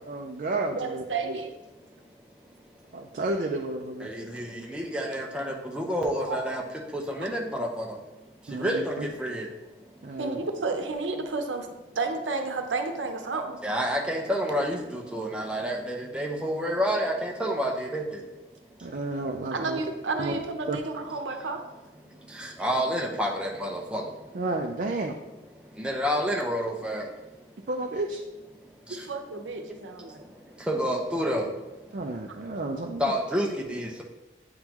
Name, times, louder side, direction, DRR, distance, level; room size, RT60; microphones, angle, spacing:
voice 1, 0.1-1.4 2.9-4.1 8.5-9.1 10.0-10.5 18.8-19.8 20.2-20.4 20.7-20.8 24.3-25.2 27.7-28.2 31.9-33.1, right 2 dB, 45° right, 2 dB, 0.4 m, -31 dB
voice 2, 0.7-1.5 6.2-6.4 8.6-8.7 10.2-11.7 11.9-13.6 19.5-21.6 29.1-30.2, right 3 dB, 85° right, 5 dB, 0.7 m, -31 dB
voice 3, 4.0-6.6 6.9-7.9 8.5-9.5 13.6-18.2 22.3-24.0 25.8-27.0 30.7-31.5 33.0-34.0, equal, 5° right, -1 dB, 0.6 m, -29 dB
8.7 x 3.7 x 3.0 m, 1.0 s
head